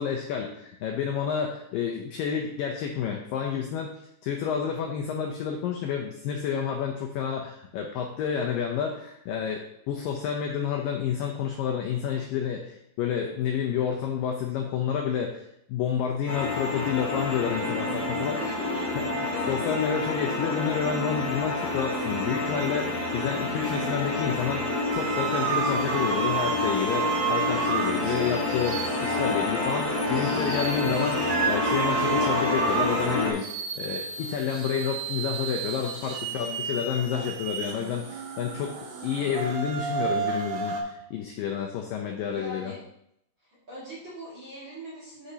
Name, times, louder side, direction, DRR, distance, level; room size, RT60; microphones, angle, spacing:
voice 1, 0.0-3.9 4.2-18.4 19.0-19.1 19.5-33.4 33.8-42.7, left 7 dB, 80° left, 1 dB, 2.0 m, -30 dB
sound 1, 16.3-33.3, left 2 dB, 50° left, 1.2 m, -28 dB
voice 2, 18.3-18.9 19.3-19.6 36.3-36.8 42.3-42.8 43.4-45.3, equal, 40° right, -8 dB, 2.1 m, -41 dB
sound 2, 24.9-40.8, right 6 dB, 75° right, 1.9 m, -32 dB
11.5 x 4.9 x 2.8 m, 0.77 s
omnidirectional pair, 4.8 m